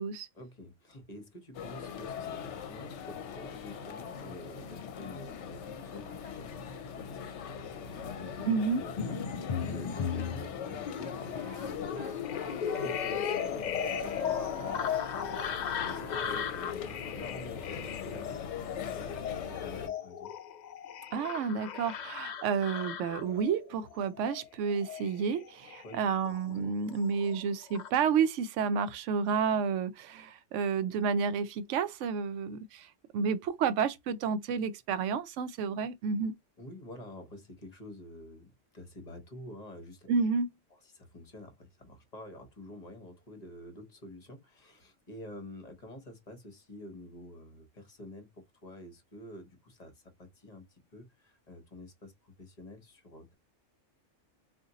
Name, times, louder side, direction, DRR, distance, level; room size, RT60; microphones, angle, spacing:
voice 1, 0.3-8.5 8.7-12.0 12.3-15.4 15.7-18.5 18.8-20.3 25.8-26.0 26.3-26.6 36.6-40.1 40.9-53.3, left 1 dB, 35° left, 0.9 m, -48 dB
sound 1, 1.5-19.9, left 7 dB, 70° left, 0.9 m, -40 dB
voice 2, 8.5-8.8 21.1-32.9 33.1-36.3 40.1-40.5, right 6 dB, 75° right, 0.9 m, -30 dB
sound 2, 9.0-26.7 27.0-27.9, left 8 dB, 85° left, 0.4 m, -37 dB
Wind instrument woodwind instrument, 10.9-13.5 13.8-16.5, right 2 dB, 50° right, 0.9 m, -46 dB
2.6 x 2.4 x 3.9 m
omnidirectional pair, 1.3 m